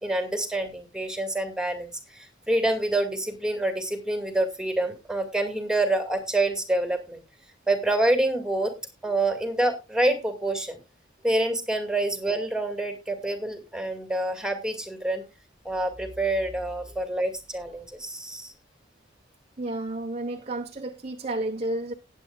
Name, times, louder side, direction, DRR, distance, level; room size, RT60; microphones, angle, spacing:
voice 1, 0.0-7.2 7.7-8.7 9.0-10.8 11.2-15.2 15.6-18.5, right 1 dB, 5° right, 2.1 m, -27 dB
voice 2, 19.6-21.9, right 2 dB, 35° right, 0.9 m, -31 dB
18.5 x 8.3 x 2.3 m
head